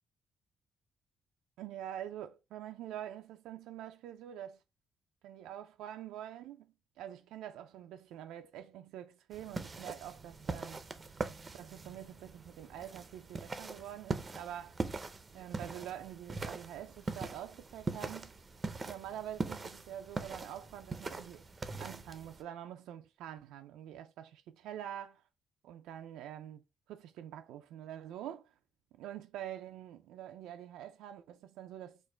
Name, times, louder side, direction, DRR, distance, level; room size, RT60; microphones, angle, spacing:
voice 1, 1.6-4.6 5.2-10.8 11.5-14.8 15.3-18.3 18.8-21.5 21.8-25.2 25.6-28.5 29.0-32.0, right 11 dB, 90° right, 0.4 m, -46 dB
sound 1, 9.3-22.4, right 3 dB, 30° right, 0.5 m, -42 dB
4.4 x 2.5 x 4.3 m
cardioid pair, 90°, 0 cm